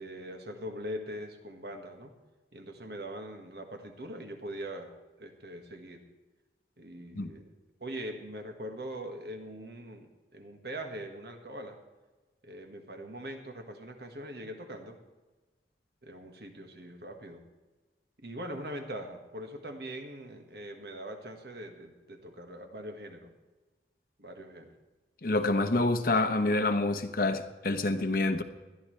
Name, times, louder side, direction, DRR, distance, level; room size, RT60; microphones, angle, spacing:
voice 1, 0.0-2.1 2.5-4.9 5.2-6.0 6.8-7.5 7.8-11.8 12.4-15.0 16.0-17.4 18.2-23.3 24.2-24.7, equal, 60° right, 4 dB, 1.7 m, -42 dB
voice 2, 25.2-28.4, left 2 dB, 55° left, 8 dB, 1.0 m, -27 dB
20.5 x 12.5 x 3.3 m, 1.2 s
head